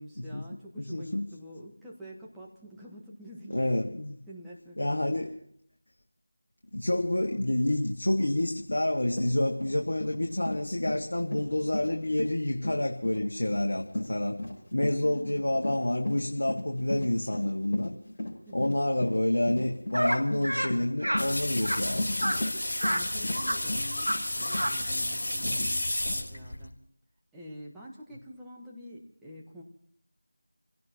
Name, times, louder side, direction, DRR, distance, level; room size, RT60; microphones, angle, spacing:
voice 1, 0.0-3.8 4.3-5.3 14.8-15.7 18.5-18.8 22.9-26.8 27.3-29.6, equal, 5° right, -5 dB, 1.2 m, -47 dB
voice 2, 0.9-1.3 3.5-4.1 4.8-5.3 6.7-14.4 14.7-17.9 18.5-22.4 25.4-25.7, left 1 dB, 65° left, 1 dB, 1.7 m, -28 dB
Run, 8.7-8.8 9.1-25.1 25.5-25.6 26.0-26.2, left 1 dB, 20° left, 5.4 m, -36 dB
sound 1, 19.9-20.2 20.4-20.7 21.0-21.2 21.6-21.8 22.2-22.4 22.8-23.0 23.3-23.6 23.9-24.1 24.4-24.7, equal, 90° right, 2.0 m, -29 dB
sound 2, 21.2-26.7, left 1 dB, 50° left, 3.6 m, -32 dB
28.5 x 17.0 x 2.9 m, 0.67 s
figure-of-eight pair, 175°, 0 cm